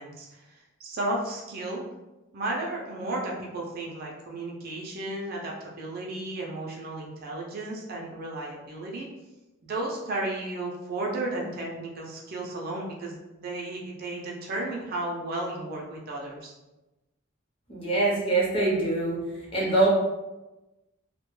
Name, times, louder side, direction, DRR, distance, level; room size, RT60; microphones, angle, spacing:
voice 1, 0.0-1.8 2.3-9.1 9.6-16.5, right 2 dB, 45° right, -2 dB, 0.4 m, -34 dB
voice 2, 17.7-19.2 19.5-19.9, right 2 dB, 25° left, -5 dB, 0.7 m, -24 dB
2.2 x 2.1 x 3.0 m, 1.0 s
head